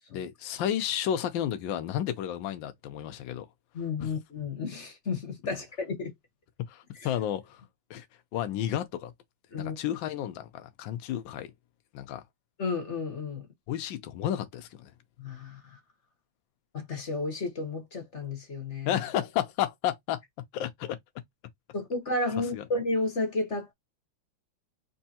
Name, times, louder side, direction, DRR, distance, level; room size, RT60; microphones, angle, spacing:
voice 1, 0.1-3.5 4.0-4.1 6.7-7.6 7.9-8.0 8.3-9.1 9.6-11.5 11.9-12.2 13.7-14.9 18.9-20.2 20.5-21.0 22.5-22.6, left 11 dB, 70° left, 1.4 m, -32 dB
voice 2, 3.7-6.1 9.5-9.8 12.6-13.5 15.2-15.8 16.7-19.0 21.7-23.7, left 3 dB, 40° left, 1.2 m, -32 dB
5.4 x 3.2 x 2.8 m
omnidirectional pair, 2.4 m